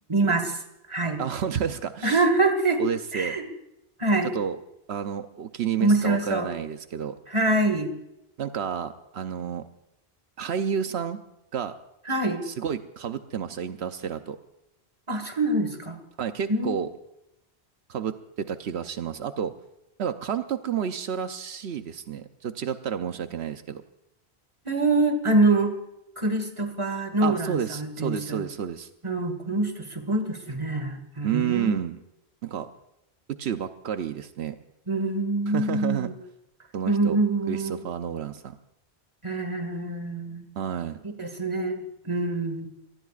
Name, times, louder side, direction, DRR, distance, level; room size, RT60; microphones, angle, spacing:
voice 1, 0.1-0.6 0.9-1.2 2.0-2.8 3.1-3.5 4.0-4.3 5.8-6.5 7.3-7.9 12.1-12.4 15.1-16.0 16.5-16.8 24.7-25.8 26.2-28.4 29.0-31.7 34.9-36.1 36.9-37.8 39.2-40.5 41.2-41.8 42.0-42.7, right 2 dB, 30° right, 7 dB, 1.8 m, -25 dB
voice 2, 1.2-2.2 2.8-3.4 4.2-4.6 4.9-7.1 8.4-9.6 10.4-11.2 11.5-11.8 12.4-14.4 16.2-16.9 17.9-19.5 20.0-23.8 27.2-28.9 31.2-32.0 32.4-32.7 33.3-34.6 35.5-36.1 36.7-37.2 37.5-38.6 40.6-41.0, right 8 dB, 80° right, 9 dB, 1.0 m, -30 dB
26.5 x 19.0 x 2.5 m, 0.87 s
omnidirectional pair, 1.1 m